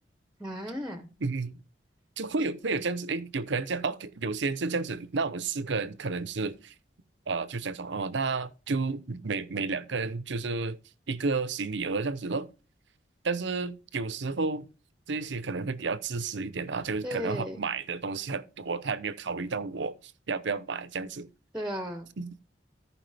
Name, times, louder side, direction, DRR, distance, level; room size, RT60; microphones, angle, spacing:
voice 1, 0.4-1.1 17.0-17.6 21.5-22.1, equal, 5° right, 0.8 m, -35 dB
voice 2, 1.2-1.5 2.2-6.7 7.3-10.8 11.1-12.5 13.2-14.7 15.1-21.3 22.2-22.4, right 4 dB, 75° right, 0.7 m, -31 dB
14.0 x 4.8 x 3.4 m
head